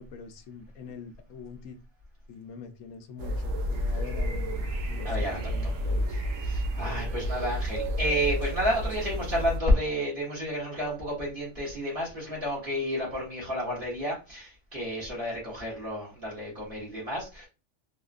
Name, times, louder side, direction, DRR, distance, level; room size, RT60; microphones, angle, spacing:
voice 1, 0.0-1.8 2.3-6.1, left 6 dB, 85° left, 1.0 m, -44 dB
sound 1, 3.2-9.6, equal, 85° right, 1.0 m, -30 dB
voice 2, 5.0-5.7 6.1-17.5, equal, 45° right, 1.6 m, -30 dB
3.5 x 3.0 x 2.4 m
omnidirectional pair, 1.3 m